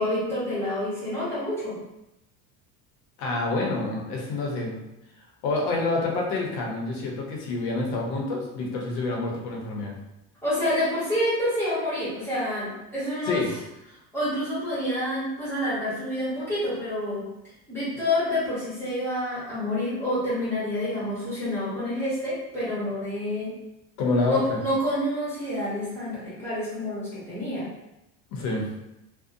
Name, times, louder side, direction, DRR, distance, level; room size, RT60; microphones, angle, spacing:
voice 1, 0.0-1.7 10.4-13.4 14.1-17.3 17.7-23.5 24.3-27.7, left 1 dB, 5° left, -10 dB, 0.8 m, -28 dB
voice 2, 3.2-4.8 5.4-9.9 13.2-13.5 24.0-24.6 28.3-28.6, left 2 dB, 75° left, 0 dB, 0.8 m, -27 dB
2.6 x 2.1 x 2.5 m, 0.91 s
cardioid pair, 160°, 34 cm